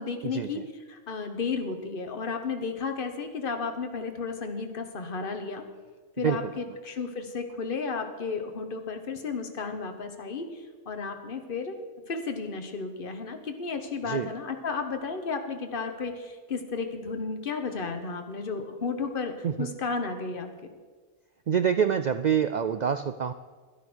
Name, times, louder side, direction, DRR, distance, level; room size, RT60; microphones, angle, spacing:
voice 1, 0.0-5.6 6.2-11.8 12.1-20.5, left 4 dB, 45° left, 6 dB, 1.3 m, -33 dB
voice 2, 21.5-23.3, right 7 dB, 70° right, 11 dB, 0.4 m, -26 dB
13.0 x 10.5 x 6.2 m, 1.4 s
omnidirectional pair, 1.3 m